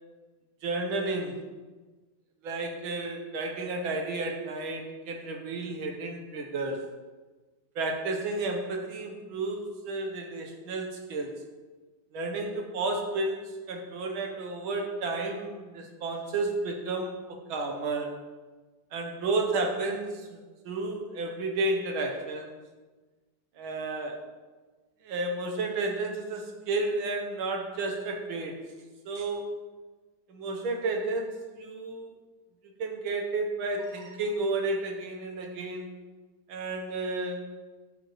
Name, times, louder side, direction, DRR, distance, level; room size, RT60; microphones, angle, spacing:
voice 1, 0.6-1.4 2.4-6.9 7.8-11.3 12.1-13.4 13.7-18.2 18.9-22.6 23.6-24.2 25.0-28.7 29.1-29.5 30.3-32.1 32.8-35.9 36.5-37.5, right 2 dB, 85° right, 2 dB, 2.0 m, -32 dB
11.0 x 7.2 x 3.2 m, 1.3 s
omnidirectional pair, 2.2 m